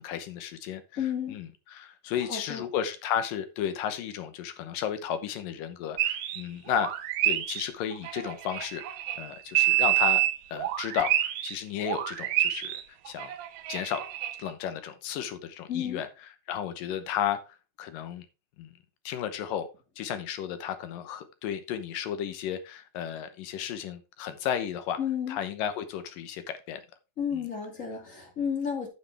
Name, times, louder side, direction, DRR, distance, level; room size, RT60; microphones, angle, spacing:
voice 1, 0.0-0.8 1.3-6.9 7.2-8.8 9.2-10.2 10.5-12.8 13.1-13.3 13.7-14.0 14.4-16.1 16.5-17.4 17.8-18.3 18.6-18.7 19.1-19.7 20.0-25.0 25.3-26.8 27.3-27.4, left 9 dB, 80° left, 10 dB, 2.7 m, -33 dB
voice 2, 1.0-1.4 2.3-2.6 15.7-16.0 25.0-25.4 27.2-28.9, left 8 dB, 25° left, 1 dB, 2.3 m, -31 dB
sound 1, 6.0-6.4 6.7-11.6 11.8-14.4, right 14 dB, 75° right, 2.4 m, -28 dB
9.6 x 7.7 x 3.4 m, 0.29 s
omnidirectional pair, 3.9 m